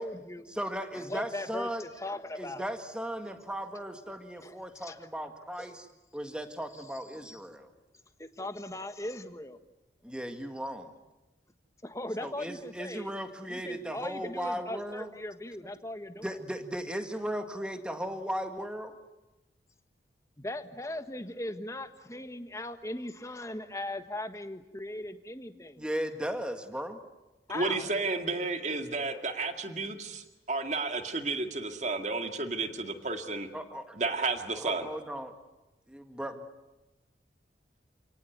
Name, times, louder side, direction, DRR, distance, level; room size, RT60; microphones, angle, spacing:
voice 1, 0.0-0.6 0.9-2.7 4.4-5.0 5.6-5.8 6.7-6.8 7.2-7.4 8.2-9.6 11.8-13.1 13.5-16.3 20.4-25.8 27.5-27.9, left 1 dB, 15° left, 8 dB, 1.5 m, -39 dB
voice 2, 0.5-1.8 2.4-5.9 6.1-7.7 10.0-10.9 12.2-15.1 16.2-19.0 25.8-27.0 33.5-34.0 34.5-35.3 35.9-36.5, equal, 5° right, 6 dB, 1.9 m, -36 dB
voice 3, 27.5-33.5 34.0-34.9, right 3 dB, 40° right, 6 dB, 2.1 m, -32 dB
29.0 x 18.5 x 9.5 m, 1.0 s
head